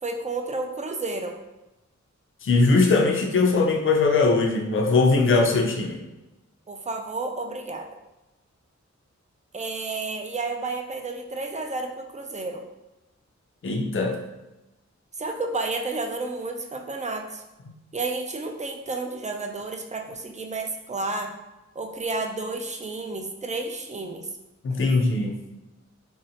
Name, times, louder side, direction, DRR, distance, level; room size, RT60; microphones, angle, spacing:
voice 1, 0.0-1.3 6.7-7.9 9.5-12.6 15.2-17.4 17.9-21.3 21.8-24.3, right 3 dB, 25° right, 3 dB, 0.4 m, -31 dB
voice 2, 2.4-6.0 13.6-14.2 24.6-25.3, left 3 dB, 45° left, 1 dB, 0.4 m, -20 dB
2.7 x 2.1 x 2.7 m, 1.0 s
wide cardioid pair, 50°, 29 cm